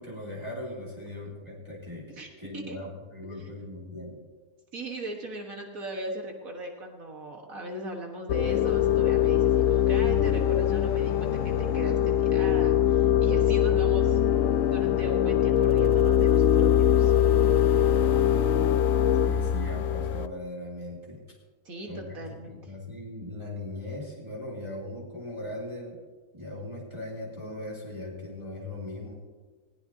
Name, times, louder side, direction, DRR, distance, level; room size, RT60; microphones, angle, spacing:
voice 1, 0.0-4.2 19.2-21.2 21.9-26.0 26.3-29.1, left 1 dB, 15° right, -5 dB, 2.8 m, -39 dB
voice 2, 4.7-14.2 14.7-17.1 21.7-22.7, right 1 dB, 60° right, 2 dB, 1.9 m, -38 dB
sound 1, 8.3-20.3, left 10 dB, 65° left, 0.9 m, -22 dB
20.5 x 16.0 x 2.8 m, 1.4 s
omnidirectional pair, 1.7 m